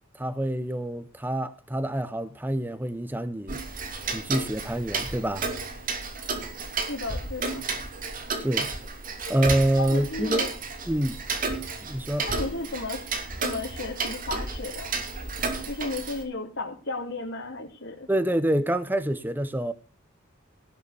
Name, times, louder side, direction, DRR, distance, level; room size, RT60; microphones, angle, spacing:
voice 1, 0.1-3.6 4.1-5.5 8.4-8.7 9.3-10.4 10.9-11.2 11.8-12.3 18.1-19.7, right 1 dB, 10° right, 0.8 m, -26 dB
Tick-tock, 3.5-16.2, right 4 dB, 40° right, 2.8 m, -32 dB
voice 2, 6.9-7.6 9.7-10.5 12.2-13.1 13.4-14.9 15.7-18.1, left 2 dB, 65° left, 3.4 m, -34 dB
18.0 x 6.8 x 7.0 m
head